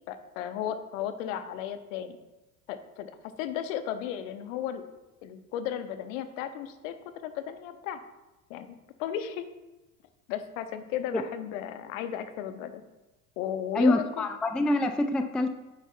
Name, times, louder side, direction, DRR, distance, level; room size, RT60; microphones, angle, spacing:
voice 1, 0.1-2.2 2.7-3.1 3.4-4.8 5.2-7.0 7.2-8.0 8.5-9.4 10.3-12.8 13.4-14.3, left 10 dB, 60° left, 10 dB, 0.9 m, -34 dB
voice 2, 13.7-15.5, left 2 dB, ahead, 8 dB, 0.3 m, -25 dB
9.9 x 8.0 x 2.6 m, 1.1 s
figure-of-eight pair, 65°, 44 cm